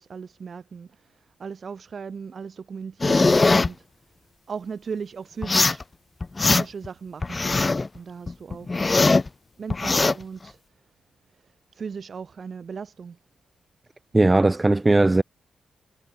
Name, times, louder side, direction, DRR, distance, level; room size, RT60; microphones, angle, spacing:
voice 1, 0.0-3.9 4.5-5.8 6.4-8.8 9.6-10.6 11.4-13.2, right 6 dB, 55° right, 3.1 m, -37 dB
sound 1, 3.0-3.7 5.4-5.8 6.2-6.9 7.2-7.9 8.3-9.3 9.7-10.1, left 3 dB, 30° left, 0.9 m, -20 dB
voice 2, 14.1-15.2, right 2 dB, 20° right, 1.3 m, -18 dB
cardioid pair, 70°, 0 cm